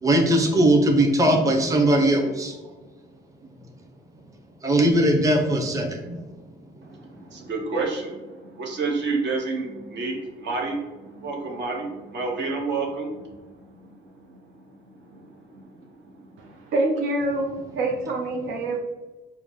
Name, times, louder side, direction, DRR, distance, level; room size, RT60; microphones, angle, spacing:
voice 1, 0.0-2.6 4.6-6.3, right 1 dB, 15° right, 2 dB, 0.6 m, -20 dB
voice 2, 6.8-14.4 15.0-16.3, right 3 dB, 65° right, 0 dB, 1.0 m, -30 dB
voice 3, 16.4-17.5 17.7-18.8, right 2 dB, 85° right, 0 dB, 0.6 m, -26 dB
4.6 x 2.1 x 3.6 m, 1.2 s
cardioid pair, 90°, 20 cm